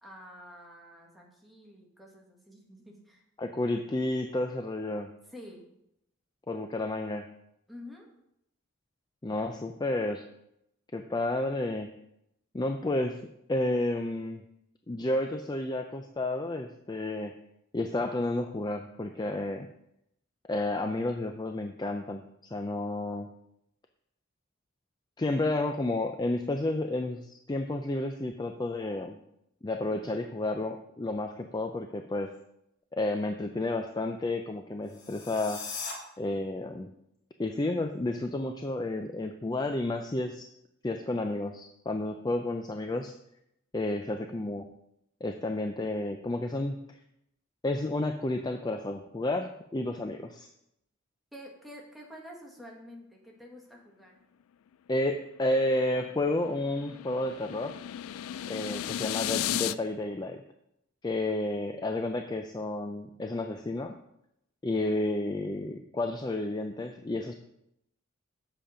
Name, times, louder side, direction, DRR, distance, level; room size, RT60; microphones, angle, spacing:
voice 1, 0.0-3.2 5.3-5.6 7.7-8.1 29.9-30.2 49.9-50.0 51.3-54.2 61.3-61.8, equal, ahead, -2 dB, 1.6 m, -49 dB
voice 2, 3.4-5.1 6.5-7.3 9.2-10.2 10.9-11.9 12.5-13.2 13.5-14.4 14.9-17.3 17.7-19.7 20.5-23.3 25.2-29.2 29.6-32.3 32.9-35.6 36.2-36.9 37.4-40.5 40.8-43.1 43.7-44.7 45.2-47.0 47.6-50.5 54.9-57.7 58.5-60.4 61.0-64.0 64.6-67.3, left 2 dB, 20° left, 6 dB, 0.4 m, -31 dB
sound 1, 34.8-35.9, left 5 dB, 70° left, 2.4 m, -39 dB
sound 2, 55.6-59.7, left 11 dB, 85° left, 0.3 m, -35 dB
7.9 x 7.0 x 5.0 m, 0.81 s
head